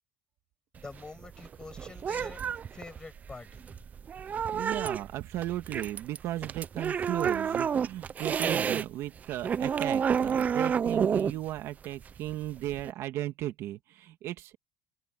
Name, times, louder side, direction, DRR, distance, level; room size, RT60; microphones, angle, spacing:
voice 1, 0.8-2.4 2.7-3.7, left 3 dB, 15° left, 7.6 m, -46 dB
sound 1, 0.8-8.9 9.2-12.9, right 7 dB, 30° right, 0.5 m, -30 dB
voice 2, 4.5-14.6, right 14 dB, 60° right, 1.9 m, -36 dB
open air
cardioid pair, 130°, 5 cm